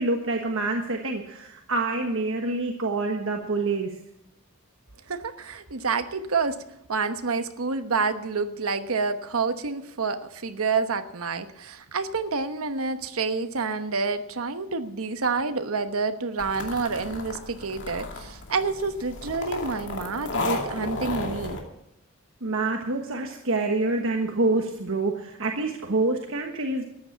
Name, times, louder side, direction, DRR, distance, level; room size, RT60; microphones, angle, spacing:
voice 1, 0.0-3.9 22.4-26.8, right 2 dB, 65° right, 3 dB, 1.3 m, -26 dB
voice 2, 5.1-6.6 6.9-21.6, right 4 dB, 80° right, 9 dB, 1.1 m, -28 dB
sound 1, 16.4-21.6, left 2 dB, 55° left, 2.5 m, -33 dB
14.0 x 9.9 x 7.3 m, 0.87 s
head